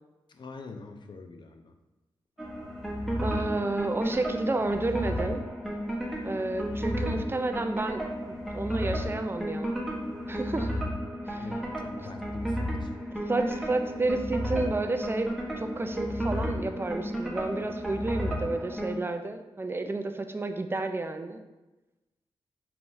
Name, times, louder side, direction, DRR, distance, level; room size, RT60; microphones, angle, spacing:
voice 1, 0.3-1.8 11.3-12.9, left 3 dB, 50° left, 5 dB, 0.6 m, -45 dB
sound 1, 2.4-19.0, equal, ahead, 1.0 m, -33 dB
voice 2, 3.2-5.4 6.2-8.1 8.5-9.8 10.3-10.7 11.3-11.4 13.3-21.4, right 2 dB, 25° right, 7 dB, 0.4 m, -31 dB
4.5 x 3.7 x 2.6 m, 1.1 s
cardioid pair, 65°, 10 cm